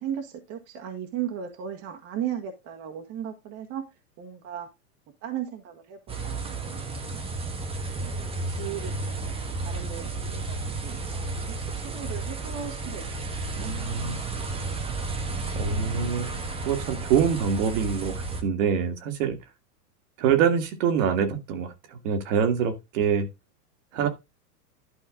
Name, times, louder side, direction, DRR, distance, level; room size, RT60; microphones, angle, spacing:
voice 1, 0.0-3.8 4.2-4.7 5.2-7.2 7.9-8.2 8.5-9.3 9.6-13.0 13.5-13.7, right 9 dB, 30° right, 1.7 m, -36 dB
sound 1, 6.1-18.4, right 3 dB, 10° right, 1.3 m, -32 dB
voice 2, 13.6-14.2 15.6-19.4 20.2-23.3 23.9-24.1, right 7 dB, 50° right, 2.2 m, -25 dB
12.0 x 5.4 x 3.8 m
hypercardioid pair, 140°, 47 cm